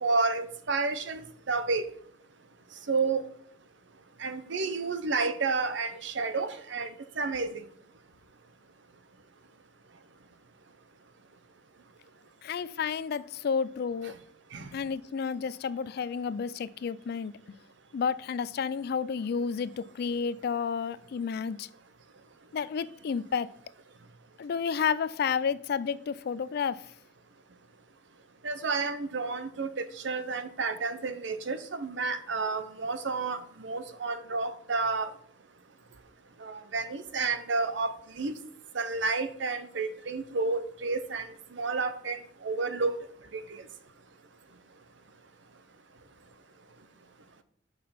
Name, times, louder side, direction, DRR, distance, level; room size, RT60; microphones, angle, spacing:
voice 1, 0.0-1.8 2.9-3.2 4.2-6.9 7.2-7.6 14.5-14.7 28.4-35.1 36.4-38.4 38.7-42.9 43.3-43.6, right 4 dB, 65° right, 11 dB, 0.7 m, -31 dB
voice 2, 12.4-14.1 14.7-17.3 17.9-21.7 22.5-23.5 24.4-26.8, left 6 dB, 55° left, 17 dB, 0.3 m, -31 dB
6.5 x 5.6 x 5.7 m, 0.62 s
head